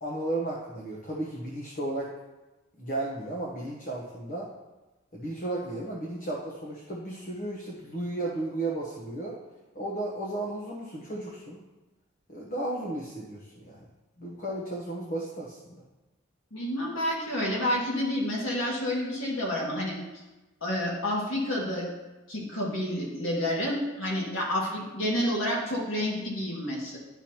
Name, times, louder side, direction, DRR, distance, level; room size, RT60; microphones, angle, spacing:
voice 1, 0.0-2.1 2.8-4.5 5.1-9.3 9.7-11.6 12.3-13.8 14.2-15.6, right 2 dB, 45° left, -3 dB, 1.0 m, -34 dB
voice 2, 16.5-20.0 20.6-21.9 22.3-27.0, left 1 dB, 75° left, -4 dB, 2.1 m, -29 dB
10.0 x 6.0 x 2.9 m, 1.1 s
head